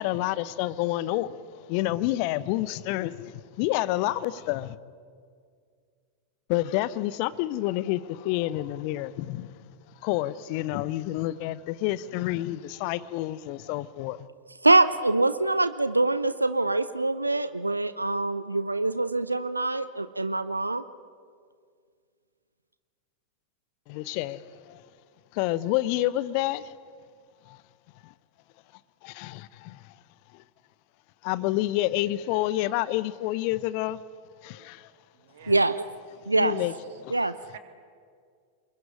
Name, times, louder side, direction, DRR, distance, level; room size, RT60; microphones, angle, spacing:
voice 1, 0.0-4.8 6.5-9.6 10.0-14.3 23.9-24.9 25.3-26.7 27.5-27.6 28.0-28.1 29.0-30.0 30.3-30.4 31.2-34.0 34.4-34.9 35.5-35.6 36.4-37.1, left 15 dB, 45° left, 19 dB, 0.9 m, -29 dB
voice 2, 14.6-20.8 35.5-35.8 36.3-36.6 37.1-37.3, right 2 dB, 85° right, 14 dB, 0.7 m, -24 dB
voice 3, 35.1-35.8 36.1-37.0 37.5-37.6, right 11 dB, 55° right, 7 dB, 2.9 m, -51 dB
28.0 x 21.5 x 9.8 m, 2.1 s
figure-of-eight pair, 90°, 0 cm